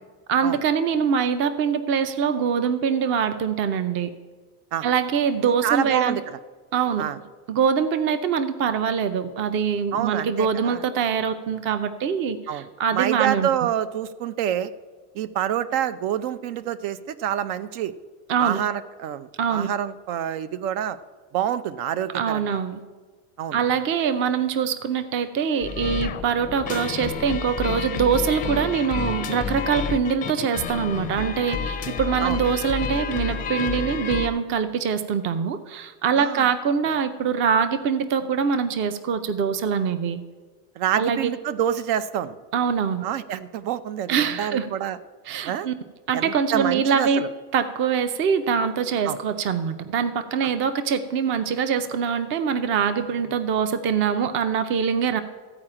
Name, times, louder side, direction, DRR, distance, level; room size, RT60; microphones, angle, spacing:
voice 1, 0.3-4.1 4.8-6.2 6.7-7.1 7.5-13.5 18.3-18.6 19.4-19.7 22.1-22.8 23.5-40.2 41.0-41.3 42.5-43.0 44.1-44.7 45.3-45.7 46.1-47.2 47.5-55.2, right 7 dB, 30° right, 11 dB, 0.5 m, -24 dB
voice 2, 5.4-6.4 7.0-7.2 9.9-10.8 12.5-12.7 12.9-14.7 15.1-17.9 18.4-21.0 21.3-22.6 23.4-23.6 32.2-32.4 36.2-36.5 40.8-42.4 43.0-45.0 45.4-45.7 46.1-47.3 49.0-49.2, right 10 dB, 70° right, 14 dB, 0.7 m, -27 dB
sound 1, 25.6-34.3, left 6 dB, 20° left, 0.5 m, -30 dB
14.5 x 4.9 x 8.7 m, 1.4 s
cardioid pair, 175°, 40 cm